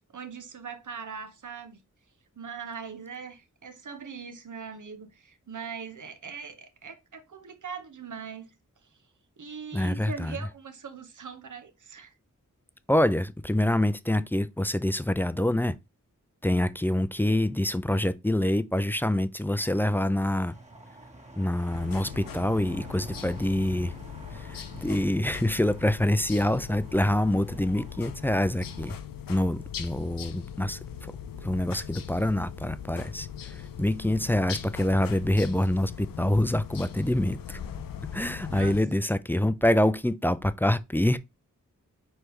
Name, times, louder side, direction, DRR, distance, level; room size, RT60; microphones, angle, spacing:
voice 1, 0.0-1.8 2.4-8.6 8.8-9.0 9.4-12.1 38.5-38.8, right 6 dB, 65° right, 0.9 m, -41 dB
voice 2, 9.7-10.4 12.9-15.8 16.4-20.5 21.4-23.9 24.3-29.0 29.3-31.1 31.4-37.6 38.1-41.2, left 1 dB, 5° left, 0.3 m, -26 dB
sound 1, 19.5-28.9, right 2 dB, 20° right, 1.3 m, -49 dB
sound 2, 21.7-38.8, left 8 dB, 90° left, 0.5 m, -40 dB
4.5 x 3.4 x 3.1 m
cardioid pair, 40°, 33 cm